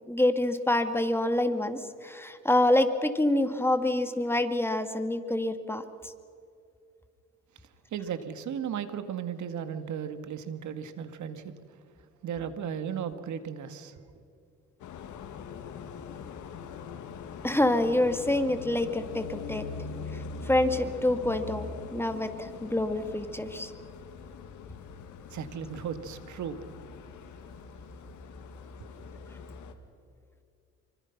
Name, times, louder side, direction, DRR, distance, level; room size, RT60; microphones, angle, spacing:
voice 1, 0.1-6.1 17.4-19.7 20.1-23.7, left 1 dB, 10° left, 8 dB, 2.1 m, -27 dB
voice 2, 7.9-11.5 12.2-13.9 25.3-26.6 28.8-28.9, right 8 dB, 70° right, 10 dB, 2.0 m, -35 dB
sound 1, 14.8-29.7, left 6 dB, 75° left, 2.2 m, -42 dB
26.5 x 25.0 x 6.0 m, 2.4 s
cardioid pair, 90°, 30 cm